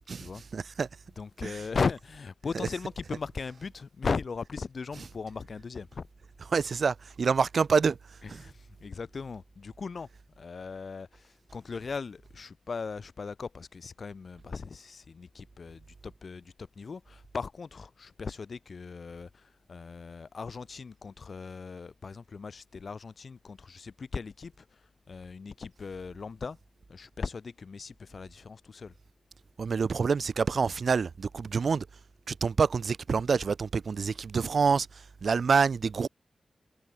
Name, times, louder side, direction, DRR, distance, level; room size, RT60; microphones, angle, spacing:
voice 1, 0.2-0.9 1.4-1.5 6.5-8.0 29.6-31.8 32.3-34.9 35.2-36.1, right 5 dB, 65° right, 0.6 m, -26 dB
voice 2, 1.2-6.1 8.2-10.1 10.4-24.8 25.1-26.6 26.9-28.9, left 5 dB, 60° left, 2.0 m, -38 dB
wide cardioid pair, 100°, 0 cm